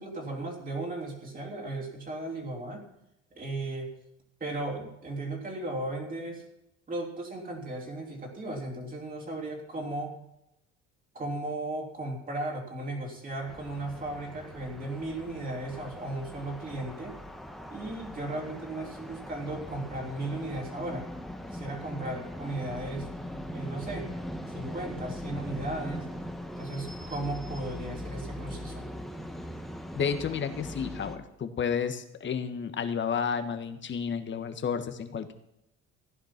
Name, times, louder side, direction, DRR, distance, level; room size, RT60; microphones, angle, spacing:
voice 1, 0.0-2.9 3.3-3.9 4.4-6.4 6.9-10.1 11.1-17.2 17.7-21.1 21.5-23.1 23.5-24.1 24.5-26.1 26.6-28.9, right 2 dB, 30° right, 1 dB, 3.3 m, -36 dB
sound 1, 13.5-31.2, equal, ahead, 1.4 m, -40 dB
voice 2, 29.9-35.3, left 7 dB, 40° left, 9 dB, 1.6 m, -31 dB
15.5 x 10.0 x 6.0 m, 0.84 s
cardioid pair, 110°, 29 cm